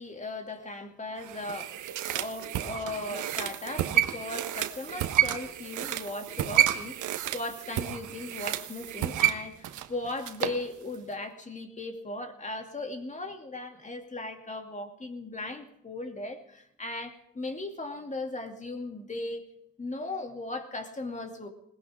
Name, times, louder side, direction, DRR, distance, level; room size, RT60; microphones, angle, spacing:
voice 1, 0.0-1.8 2.1-19.5 19.8-21.5, left 2 dB, 25° left, 5 dB, 2.7 m, -37 dB
sound 1, 1.2-10.6 10.9-11.0, right 11 dB, 80° right, 1.3 m, -30 dB
21.0 x 18.5 x 3.7 m, 0.76 s
cardioid pair, 90°, 30 cm